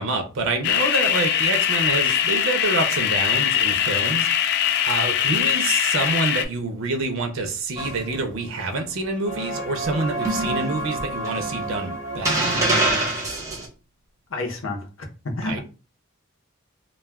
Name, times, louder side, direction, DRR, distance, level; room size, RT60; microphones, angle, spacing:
voice 1, 0.0-12.4 15.4-15.6, right 3 dB, 65° right, 0.5 m, -27 dB
sound 1, 0.6-6.4, left 9 dB, 50° left, 0.3 m, -22 dB
sound 2, 7.8-8.6 9.2-13.7, right 2 dB, 15° right, 0.7 m, -26 dB
voice 2, 14.3-14.8 15.4-15.6, left 2 dB, 70° left, 0.8 m, -28 dB
2.3 x 2.3 x 3.3 m
head